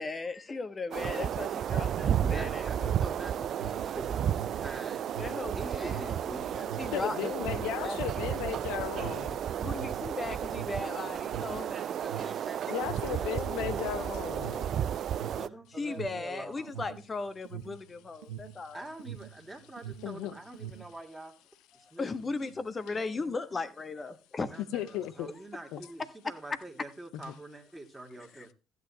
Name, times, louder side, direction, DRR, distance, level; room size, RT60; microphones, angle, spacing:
voice 1, 0.0-3.0 5.2-8.3 9.6-11.7 12.2-12.3 15.8-18.8 22.0-24.5 28.3-28.5, left 3 dB, 30° left, 1.3 m, -37 dB
sound 1, 0.9-15.5, right 9 dB, 50° right, 0.4 m, -33 dB
Alarm, 1.7-19.4 19.7-21.0, right 10 dB, 75° right, 1.0 m, -44 dB
voice 2, 2.0-5.3 5.5-6.6 11.4-12.6 12.9-14.1 15.3-16.9 18.7-21.4 21.9-22.7 24.4-28.5, right 2 dB, 10° right, 2.4 m, -45 dB
voice 3, 6.9-9.4 12.7-14.9 20.0-20.4 24.7-25.3 25.7-25.8, left 12 dB, 65° left, 0.8 m, -35 dB
15.0 x 8.1 x 2.9 m
figure-of-eight pair, 55°, 0 cm